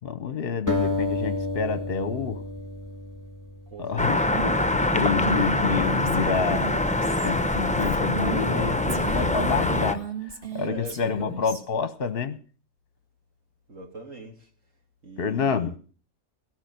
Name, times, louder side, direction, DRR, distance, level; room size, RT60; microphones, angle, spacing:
voice 1, 0.0-2.4 3.8-6.8 7.2-10.1 10.5-12.4 15.2-15.8, left 6 dB, 50° left, 0.9 m, -28 dB
sound 1, 0.7-3.9, left 2 dB, 10° right, 2.4 m, -30 dB
voice 2, 3.7-4.5 8.8-9.1 10.6-11.6 13.7-14.5 15.0-15.8, right 2 dB, 60° right, 3.2 m, -41 dB
sound 2, 4.0-9.9, left 1 dB, 10° left, 0.5 m, -24 dB
Female speech woman speaking, 5.1-8.6 8.9-11.6, right 4 dB, 40° right, 1.9 m, -35 dB
17.0 x 6.3 x 9.2 m
omnidirectional pair, 1.5 m